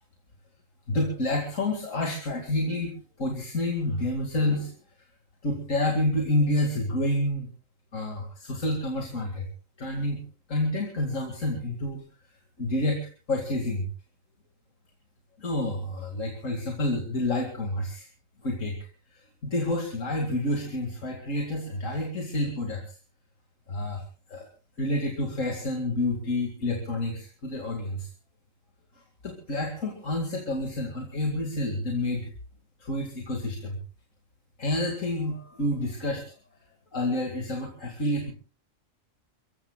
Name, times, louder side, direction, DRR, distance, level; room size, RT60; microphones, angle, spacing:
voice 1, 0.9-2.9 3.2-4.7 5.4-7.5 7.9-9.5 9.8-10.2 10.5-12.0 12.6-13.9 15.4-18.1 18.4-18.8 19.1-23.0 23.7-24.0 24.3-24.5 24.8-28.1 29.2-32.3 32.8-33.8 34.6-36.3 36.9-38.3, left 1 dB, 75° left, 1 dB, 2.7 m, -29 dB
29.5 x 15.5 x 2.3 m, 0.36 s
omnidirectional pair, 1.4 m